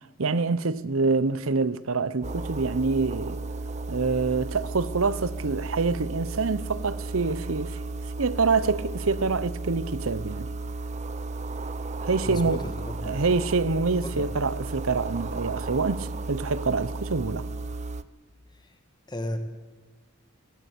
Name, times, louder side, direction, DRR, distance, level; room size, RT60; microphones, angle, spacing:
voice 1, 0.2-3.4 3.9-7.8 8.2-10.5 12.0-12.6 13.0-17.5, right 4 dB, 65° right, 0.8 m, -26 dB
sound 1, 2.2-18.0, right 3 dB, 30° right, 0.7 m, -34 dB
voice 2, 12.2-13.2 14.0-14.3 18.5-18.8 19.1-19.4, left 1 dB, 20° left, 1.7 m, -35 dB
18.5 x 18.0 x 8.4 m
head